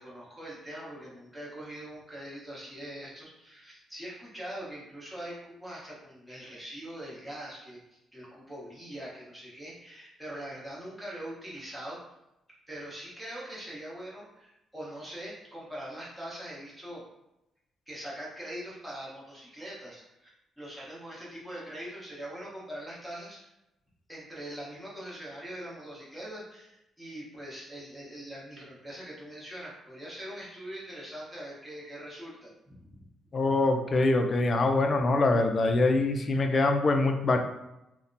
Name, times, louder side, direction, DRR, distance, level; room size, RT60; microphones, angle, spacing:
voice 1, 0.0-7.8 8.1-12.0 12.7-17.0 17.9-20.3 20.6-23.5 24.1-33.0, right 1 dB, 5° right, -7 dB, 1.0 m, -42 dB
voice 2, 33.3-37.4, left 2 dB, 40° left, 5 dB, 0.3 m, -24 dB
2.7 x 2.1 x 2.5 m, 0.88 s
cardioid pair, 90°, 0 cm